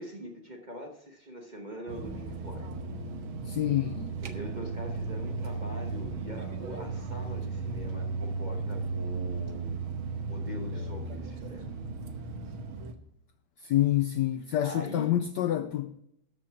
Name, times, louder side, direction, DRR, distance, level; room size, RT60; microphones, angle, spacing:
voice 1, 0.0-2.7 4.2-9.8 10.2-11.7 14.6-15.1, equal, 25° right, 1.1 m, -43 dB
sound 1, 1.9-12.9, right 3 dB, 75° right, 1.8 m, -35 dB
voice 2, 3.5-4.1 13.6-16.0, left 13 dB, 80° left, 0.9 m, -27 dB
13.0 x 6.0 x 5.9 m
omnidirectional pair, 2.4 m